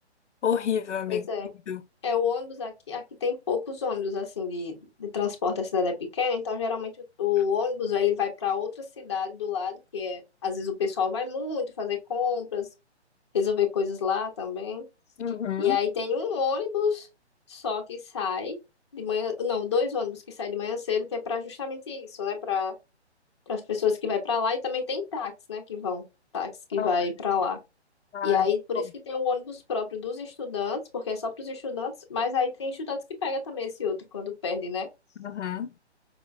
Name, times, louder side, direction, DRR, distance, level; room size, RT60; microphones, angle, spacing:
voice 1, 0.4-1.3 1.7-1.8 15.2-15.8 26.8-26.9 28.1-28.5 35.2-35.7, left 8 dB, 90° left, 0.6 m, -29 dB
voice 2, 1.1-1.5 2.0-6.9 7.2-12.7 13.3-14.9 15.6-17.1 17.5-18.6 18.9-22.7 23.5-26.0 26.3-27.6 28.2-34.9, left 6 dB, 25° left, 0.5 m, -29 dB
4.6 x 2.1 x 2.4 m
hypercardioid pair, 150°, 34 cm